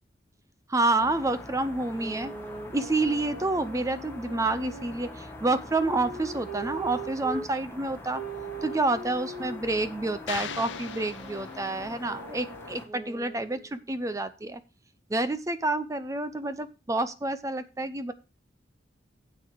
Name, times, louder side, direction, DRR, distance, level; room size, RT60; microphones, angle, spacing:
voice 1, 0.7-2.3 2.7-8.2 8.6-14.6 15.1-18.1, right 2 dB, 20° right, 12 dB, 0.6 m, -28 dB
sound 1, 1.0-12.9, left 1 dB, 15° left, 1.3 m, -45 dB
sound 2, 1.9-7.5 8.1-13.7, right 2 dB, 50° right, 2.6 m, -41 dB
sound 3, 10.3-12.0, left 8 dB, 90° left, 0.6 m, -39 dB
9.4 x 7.3 x 4.6 m, 0.31 s
head